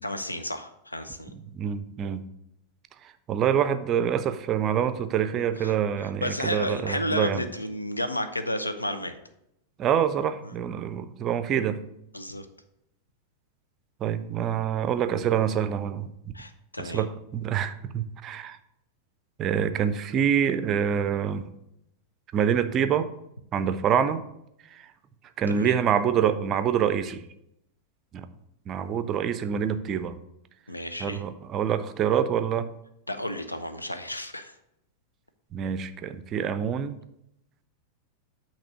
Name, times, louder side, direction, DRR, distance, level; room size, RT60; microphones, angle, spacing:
voice 1, 0.0-1.3 5.6-5.7 6.0-9.1 10.4-10.5 12.1-12.5 16.3-17.1 25.5-25.7 30.7-31.2 33.1-34.6, left 1 dB, 85° left, 9 dB, 0.5 m, -32 dB
voice 2, 1.3-2.3 3.3-7.4 9.8-11.8 14.0-16.1 16.8-18.6 19.4-21.4 22.3-23.1 23.5-24.2 24.7-24.9 25.4-27.3 28.1-28.3 28.7-30.1 31.0-32.7 35.5-37.0, right 8 dB, 30° right, 11 dB, 0.5 m, -26 dB
8.5 x 2.9 x 5.8 m, 0.79 s
figure-of-eight pair, 90°, 0 cm